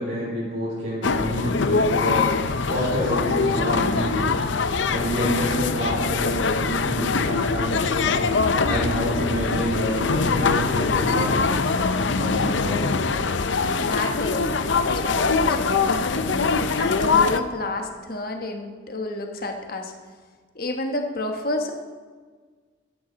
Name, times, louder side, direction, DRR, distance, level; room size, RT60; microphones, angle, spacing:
voice 1, 0.0-4.3 4.9-8.2 8.6-11.5 11.8-13.1, equal, 65° right, -9 dB, 4.4 m, -28 dB
sound 1, 1.0-17.4, left 4 dB, 70° left, 0.6 m, -23 dB
voice 2, 13.8-19.9 20.5-21.7, left 2 dB, 50° left, 3 dB, 1.3 m, -30 dB
14.5 x 11.5 x 4.0 m, 1.5 s
head